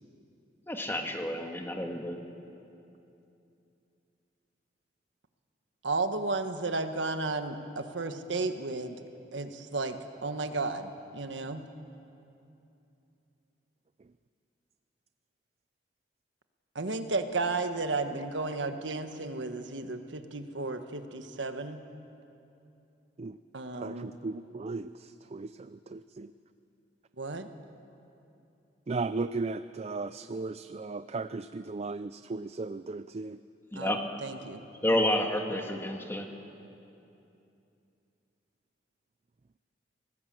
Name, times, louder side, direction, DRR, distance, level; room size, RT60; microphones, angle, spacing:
voice 1, 0.7-2.2 33.7-34.0 34.8-36.3, left 1 dB, 15° left, 3 dB, 1.7 m, -30 dB
voice 2, 5.8-9.0 9.3-10.0 10.2-11.6 16.7-21.8 23.5-24.1 27.2-27.5 33.7-35.0, right 3 dB, 85° right, 7 dB, 1.4 m, -33 dB
voice 3, 23.8-26.3 28.9-33.4, right 3 dB, 35° right, 12 dB, 0.4 m, -36 dB
25.0 x 18.5 x 7.6 m, 2.8 s
head